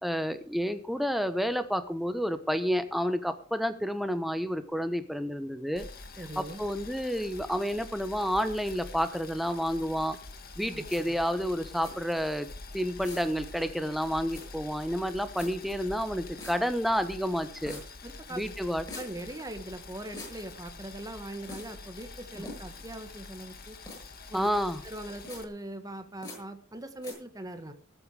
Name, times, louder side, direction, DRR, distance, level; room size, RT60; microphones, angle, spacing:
voice 1, 0.0-5.9 6.4-10.2 10.6-12.5 12.7-17.7 18.3-18.8 22.3-22.4 24.3-24.8, equal, ahead, 10 dB, 1.1 m, -30 dB
Boiling, 5.8-25.4, left 3 dB, 45° left, 1.9 m, -46 dB
voice 2, 6.2-6.6 10.7-11.2 17.5-18.4 18.9-23.8 24.3-24.5 24.8-27.7, right 1 dB, 15° right, 8 dB, 1.5 m, -41 dB
sound 1, 10.9-11.0 11.8-11.9 13.0-13.3 14.3-14.4 15.4-15.5 16.4-16.5 17.7-17.8 18.9-19.1 20.1-20.3 21.5-21.7 22.5-22.8 23.9-24.0 25.2-25.4 26.2-26.4 27.0-27.1, left 2 dB, 20° left, 7.9 m, -42 dB
18.5 x 8.8 x 4.9 m, 0.40 s
head